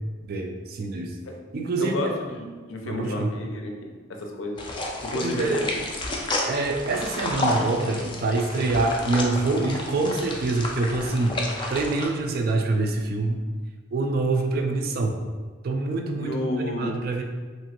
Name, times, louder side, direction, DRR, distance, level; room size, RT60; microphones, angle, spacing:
voice 1, 0.3-1.1 1.5-1.9 2.8-3.3 5.1-5.6 6.5-11.3 11.7-13.4 13.9-15.2 15.6-17.2, right 3 dB, 50° right, 3 dB, 0.3 m, -25 dB
voice 2, 1.8-4.6 5.0-5.8 16.2-17.0, left 1 dB, 80° left, 2 dB, 0.5 m, -31 dB
sound 1, 4.6-12.1, left 2 dB, 25° left, 0.3 m, -31 dB
2.9 x 2.6 x 2.8 m, 1.4 s
head